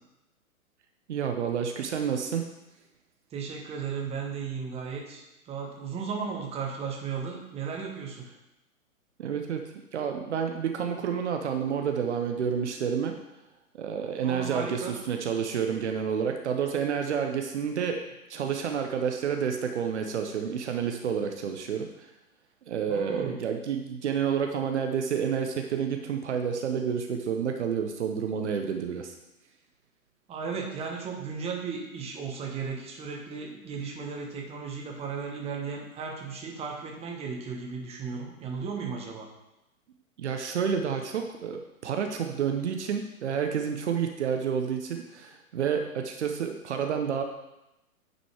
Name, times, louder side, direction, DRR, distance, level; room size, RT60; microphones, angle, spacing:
voice 1, 1.1-2.4 9.2-9.6 9.9-13.1 13.7-18.0 18.3-22.1 22.7-29.2 40.2-47.2, right 7 dB, 50° right, 5 dB, 0.9 m, -29 dB
voice 2, 3.3-8.2 14.2-14.9 22.9-23.4 30.3-39.3, right 5 dB, 15° right, 0 dB, 1.3 m, -35 dB
9.5 x 5.3 x 4.7 m, 0.92 s
figure-of-eight pair, 115°, 43 cm